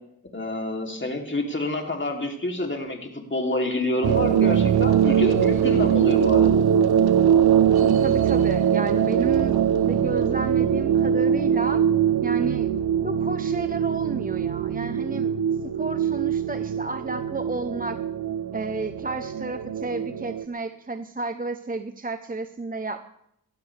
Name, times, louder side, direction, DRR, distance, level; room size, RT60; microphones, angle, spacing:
voice 1, 0.3-6.7, left 2 dB, 30° left, 2 dB, 3.2 m, -28 dB
sound 1, 4.0-20.4, right 9 dB, 90° right, 0.7 m, -22 dB
voice 2, 7.8-9.5 9.9-11.8 12.2-12.7 13.0-15.3 15.8-18.0 18.5-23.0, right 3 dB, 25° right, 9 dB, 0.8 m, -31 dB
19.0 x 12.5 x 3.4 m, 0.75 s
cardioid pair, 45°, 37 cm